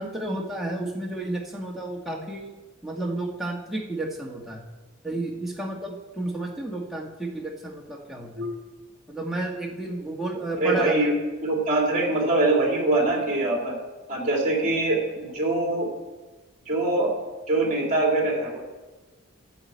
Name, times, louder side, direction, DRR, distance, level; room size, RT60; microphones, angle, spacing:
voice 1, 0.0-2.5 2.8-4.6 5.0-8.4 9.1-11.1, right 2 dB, ahead, -3 dB, 1.5 m, -31 dB
voice 2, 10.6-11.1 11.4-13.8 14.1-15.9 16.7-17.1 17.5-18.7, right 2 dB, 40° right, -1 dB, 2.8 m, -23 dB
13.5 x 7.9 x 4.5 m, 1.2 s
head